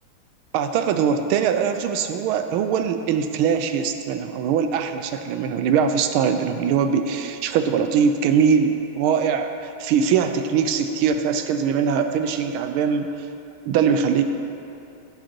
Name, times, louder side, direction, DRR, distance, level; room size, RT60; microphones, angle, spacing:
voice 1, 0.5-13.3 13.7-14.2, right 7 dB, 80° right, 7 dB, 1.4 m, -22 dB
15.0 x 5.1 x 4.5 m, 2.7 s
omnidirectional pair, 2.4 m